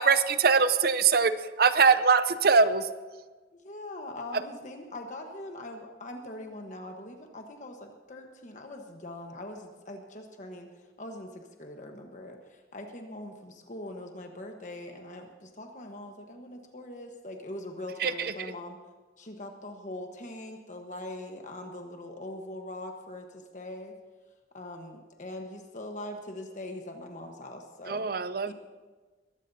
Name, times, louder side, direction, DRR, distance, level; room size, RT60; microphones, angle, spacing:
voice 1, 0.0-2.9 18.0-18.5 27.9-28.5, right 5 dB, 60° right, 12 dB, 0.7 m, -23 dB
voice 2, 3.6-18.8 19.2-23.9 24.5-28.0 28.5-28.6, left 1 dB, 45° left, 3 dB, 1.3 m, -42 dB
21.5 x 15.0 x 2.8 m, 1.3 s
head